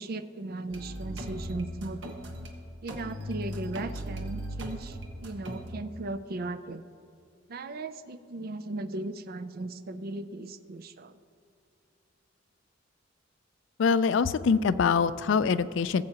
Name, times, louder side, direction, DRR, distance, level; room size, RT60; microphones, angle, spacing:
voice 1, 0.0-2.2 2.8-6.8 7.5-11.2, right 2 dB, 50° right, 10 dB, 0.5 m, -37 dB
sound 1, 0.7-2.5 2.9-5.7, equal, 65° right, 1.3 m, -38 dB
voice 2, 13.8-16.0, left 5 dB, 65° left, 14 dB, 0.4 m, -24 dB
18.5 x 7.7 x 2.9 m, 2.4 s
head